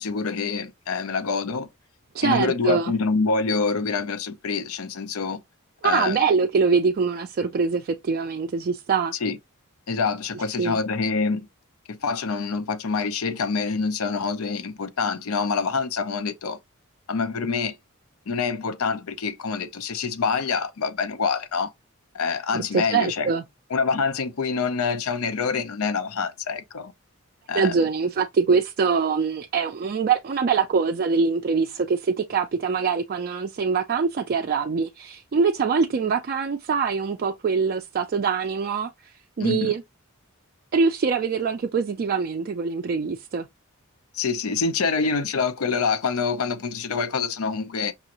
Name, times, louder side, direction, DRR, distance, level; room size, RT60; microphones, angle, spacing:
voice 1, 0.0-1.7 2.2-5.4 5.8-6.2 9.2-9.4 9.9-11.5 11.9-16.6 17.1-17.8 18.3-21.7 22.1-23.3 23.7-26.9 27.5-27.7 39.4-39.7 44.1-47.9, left 5 dB, 70° left, 0.6 m, -26 dB
voice 2, 2.1-2.9 5.8-9.1 10.6-10.8 22.5-23.4 27.5-39.8 40.7-43.5, right 5 dB, 45° right, 0.4 m, -24 dB
5.4 x 2.5 x 2.9 m
head